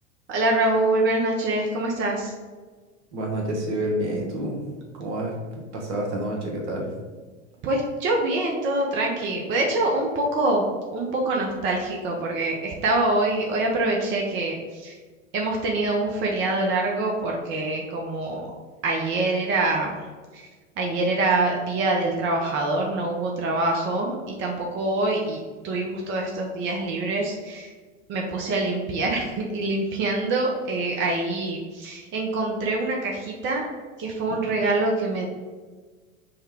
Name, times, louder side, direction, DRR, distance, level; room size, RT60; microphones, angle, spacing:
voice 1, 0.3-2.3 7.6-10.7 10.9-14.9 15.3-18.5 18.8-20.0 20.3-20.5 20.8-27.7 28.1-33.7 34.0-35.2, right 2 dB, 30° right, 0 dB, 0.7 m, -25 dB
voice 2, 3.1-4.6 4.9-6.9 34.3-34.4, right 1 dB, 60° right, -1 dB, 1.3 m, -29 dB
5.4 x 2.2 x 3.4 m, 1.4 s
figure-of-eight pair, 80°, 38 cm